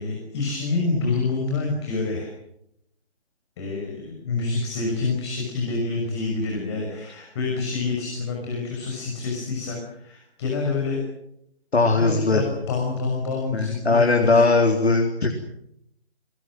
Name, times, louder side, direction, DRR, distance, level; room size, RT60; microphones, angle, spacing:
voice 1, 0.0-2.3 3.6-11.0 11.9-14.5, left 3 dB, 25° left, 0 dB, 6.2 m, -27 dB
voice 2, 11.7-12.4 13.5-15.3, left 3 dB, 70° left, 3 dB, 3.8 m, -19 dB
29.0 x 19.0 x 7.7 m, 0.76 s
figure-of-eight pair, 160°, 33 cm